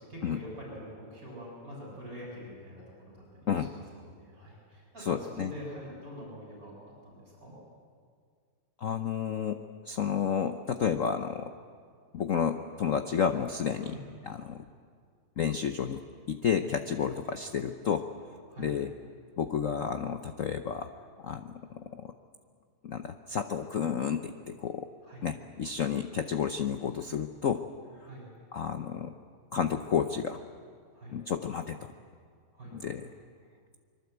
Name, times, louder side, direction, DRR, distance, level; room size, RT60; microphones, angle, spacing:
voice 1, 0.0-3.2 3.6-6.7 7.0-7.5 13.8-14.0 16.6-16.7 18.5-18.7 25.0-25.3 28.0-28.3 30.9-31.2 32.5-33.0, equal, 40° right, -3 dB, 7.4 m, -45 dB
voice 2, 5.0-5.5 8.8-11.5 12.1-14.0 14.2-14.6 15.4-16.0 16.3-18.1 18.6-18.9 19.4-20.9 21.2-22.1 22.8-24.9 25.2-27.6 28.5-29.1 29.5-30.4 31.1-31.9 32.7-33.1, left 7 dB, 70° left, 7 dB, 0.7 m, -31 dB
25.0 x 23.0 x 8.0 m, 2.1 s
omnidirectional pair, 2.4 m